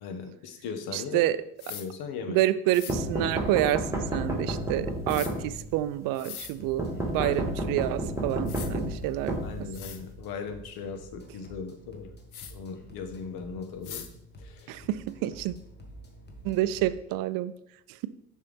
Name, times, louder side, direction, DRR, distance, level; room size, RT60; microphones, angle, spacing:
voice 1, 0.0-1.2 1.7-2.4 7.2-7.4 9.4-12.1 12.5-14.1 14.4-14.8, left 5 dB, 60° left, 7 dB, 1.1 m, -38 dB
voice 2, 0.9-1.4 2.3-9.4 14.7-15.5 16.4-17.5 17.9-18.1, right 14 dB, 55° right, 15 dB, 0.5 m, -28 dB
sound 1, 1.6-1.9 2.7-3.0 5.1-5.3 6.1-6.5 8.0-8.1 8.5-8.7 9.4-9.5 9.7-10.0 12.3-12.5 13.8-14.1, left 9 dB, 90° left, 0.6 m, -41 dB
sound 2, 2.9-5.8 6.8-10.1, right 1 dB, 5° right, 1.6 m, -31 dB
sound 3, 6.4-16.9, equal, 25° left, 1.4 m, -50 dB
6.7 x 5.5 x 3.4 m, 0.76 s
hypercardioid pair, 55°, 42 cm